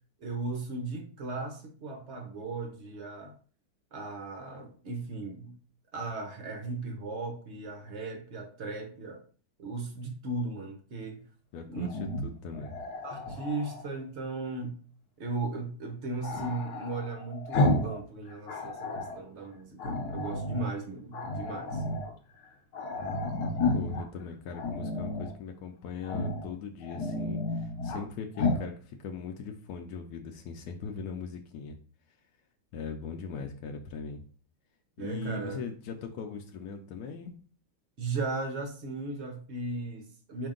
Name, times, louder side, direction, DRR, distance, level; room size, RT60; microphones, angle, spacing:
voice 1, 0.2-3.3 3.9-5.6 5.9-9.2 9.6-11.2 11.7-11.9 13.0-14.8 15.2-21.8 35.0-35.6 38.0-40.5, right 3 dB, 65° right, 0.6 m, -36 dB
voice 2, 11.5-11.9 12.2-12.8 23.7-31.8 32.7-34.2 35.0-37.3, left 5 dB, 75° left, 0.8 m, -40 dB
Growling, 11.9-13.9 16.2-18.0 18.3-19.2 19.8-20.7 21.1-22.1 22.4-22.5 22.7-24.1 24.5-25.3 26.0-26.5 26.8-28.0 28.4-28.7, left 2 dB, 60° left, 1.2 m, -32 dB
5.1 x 2.8 x 3.7 m
omnidirectional pair, 2.3 m